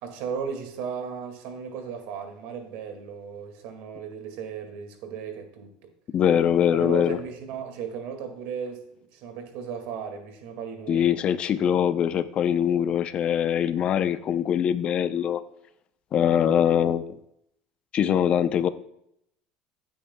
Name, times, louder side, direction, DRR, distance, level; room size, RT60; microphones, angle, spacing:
voice 1, 0.0-5.7 6.7-8.9 9.1-11.1, right 7 dB, 70° right, 5 dB, 2.1 m, -35 dB
voice 2, 6.1-7.2 10.9-15.4 16.1-17.0 17.9-18.7, left 9 dB, 40° left, 12 dB, 0.6 m, -22 dB
15.5 x 8.6 x 2.3 m, 0.76 s
cardioid pair, 140°, 3 cm